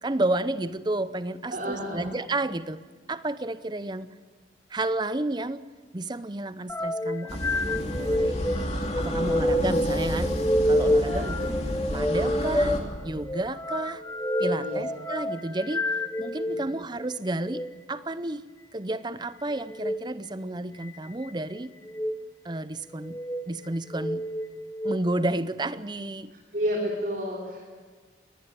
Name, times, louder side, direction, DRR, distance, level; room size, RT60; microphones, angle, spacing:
voice 1, 0.0-2.8 3.1-4.1 4.7-5.6 5.9-8.3 8.8-10.3 10.6-11.6 11.9-12.7 13.0-14.0 14.4-17.6 17.9-18.5 18.7-21.7 22.4-23.2 23.5-24.2 24.8-26.3, right 2 dB, 25° right, 14 dB, 0.7 m, -31 dB
voice 2, 1.5-2.1 11.0-11.3 14.6-14.9 16.4-16.7 26.5-27.7, equal, 50° right, -3 dB, 3.7 m, -31 dB
sound 1, 6.7-16.6 17.4-17.7 19.7-20.0 20.8-21.3 21.9-22.2 22.9-23.4 23.9-25.0, left 1 dB, 10° left, 0.8 m, -28 dB
sound 2, 7.3-12.8, equal, 35° left, 2.9 m, -31 dB
20.5 x 19.0 x 9.0 m, 1.4 s
head